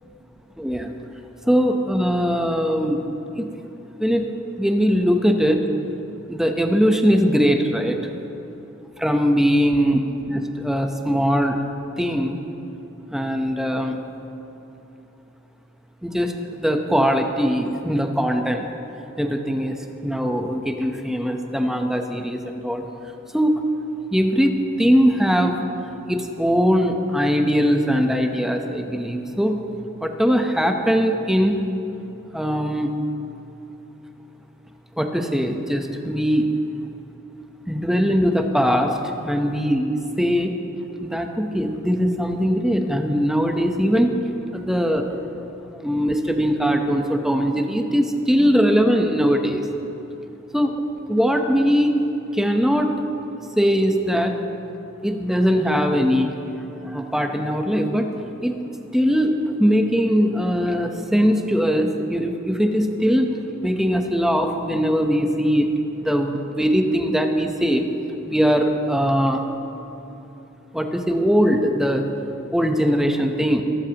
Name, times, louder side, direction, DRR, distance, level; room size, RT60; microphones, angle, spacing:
voice 1, 0.6-0.9 1.5-3.0 3.4-3.5 4.0-4.3 4.6-5.6 6.3-8.0 9.0-10.0 10.3-11.6 12.0-12.4 13.1-14.0 16.0-18.7 19.2-19.8 20.0-22.8 23.3-23.5 24.1-25.5 26.1-29.6 30.0-31.6 32.3-32.9 35.0-36.5 37.7-39.0 39.2-40.5 41.0-44.1 44.5-45.1 45.7-49.6 50.5-50.7 51.1-52.0 52.3-52.9 53.6-54.3 55.0-56.3 56.8-58.1 58.4-58.5 58.9-63.3 63.6-65.7 66.0-67.8 68.3-69.4 70.7-72.1 72.5-73.6, equal, ahead, 4 dB, 0.8 m, -20 dB
23.5 x 12.5 x 2.9 m, 2.9 s
head